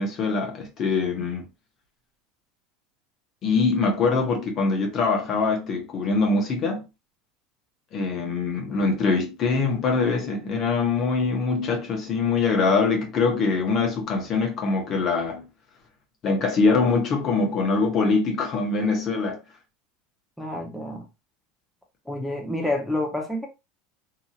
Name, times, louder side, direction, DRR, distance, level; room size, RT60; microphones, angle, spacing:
voice 1, 0.0-1.5 3.4-6.8 7.9-15.5 16.2-19.4, left 4 dB, 45° left, 1.1 m, -23 dB
voice 2, 20.4-21.1 22.1-23.5, left 1 dB, ahead, 0.9 m, -28 dB
3.0 x 2.7 x 2.4 m
hypercardioid pair, 95°, 0 cm